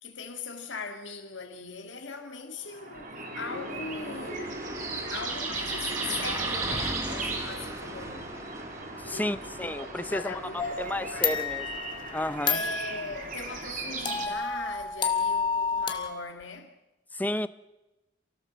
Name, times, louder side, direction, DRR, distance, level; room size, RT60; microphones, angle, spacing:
voice 1, 0.0-4.6 4.9-8.4 9.0-11.5 12.4-16.7, left 4 dB, 90° left, 1.9 m, -40 dB
sound 1, 2.6-14.3, right 3 dB, 45° right, 3.9 m, -37 dB
sound 2, 3.0-3.1 3.4-13.2 13.5-13.6 16.4-16.5, right 1 dB, 15° right, 1.6 m, -41 dB
voice 2, 9.0-10.4 10.8-11.7 12.1-12.6 17.1-17.5, left 1 dB, 10° left, 0.7 m, -31 dB
sound 3, 10.6-13.1 14.1-16.1, left 5 dB, 25° left, 2.2 m, -30 dB
28.0 x 18.0 x 7.4 m
head